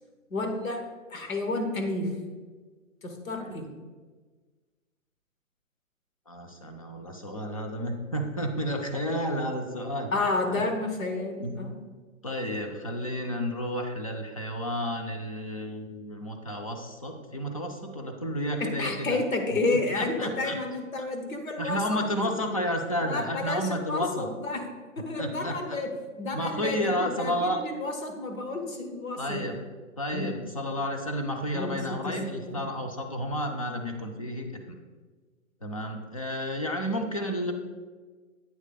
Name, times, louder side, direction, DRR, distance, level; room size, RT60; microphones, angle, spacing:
voice 1, 0.3-0.8 1.1-2.1 3.0-3.7 10.1-11.7 18.6-22.0 23.1-24.6 25.0-25.9 26.2-29.4 30.1-30.3 31.5-32.7, left 2 dB, 80° left, 4 dB, 1.3 m, -31 dB
voice 2, 6.3-10.1 10.5-10.6 11.4-11.7 12.2-19.2 19.9-20.6 21.0-21.1 21.6-24.3 25.2-25.8 26.3-27.6 29.2-29.6 30.0-34.8 35.6-37.5, equal, 30° left, 3 dB, 0.4 m, -31 dB
8.3 x 3.2 x 4.0 m, 1.4 s
hypercardioid pair, 145°, 40 cm